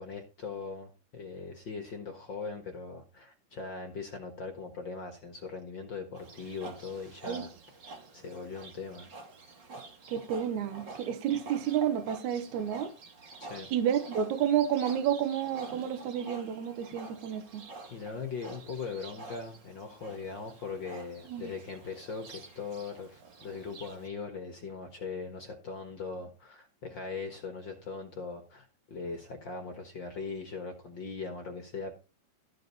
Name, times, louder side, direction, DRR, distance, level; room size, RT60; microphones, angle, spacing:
voice 1, 0.0-7.8 8.1-9.1 13.4-13.7 17.9-31.9, left 4 dB, 50° left, 1.5 m, -40 dB
Livestock farm animals working animals, 6.1-24.1, right 3 dB, 35° right, 2.3 m, -48 dB
voice 2, 10.1-12.9 13.7-17.6 21.3-21.5, right 9 dB, 65° right, 2.4 m, -30 dB
14.0 x 5.2 x 5.4 m
omnidirectional pair, 3.9 m